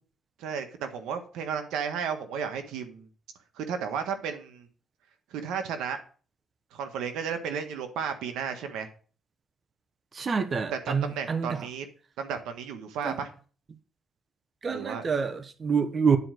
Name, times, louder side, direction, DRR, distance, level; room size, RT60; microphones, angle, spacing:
voice 1, 0.4-3.1 3.6-4.7 5.3-6.0 6.7-8.9 10.7-11.9 12.2-13.3 14.7-15.0, right 7 dB, 90° right, 1.5 m, -33 dB
voice 2, 10.1-11.7 13.0-13.2 14.6-16.2, right 6 dB, 40° right, 1.1 m, -27 dB
10.0 x 4.7 x 6.5 m
cardioid pair, 90°, 0 cm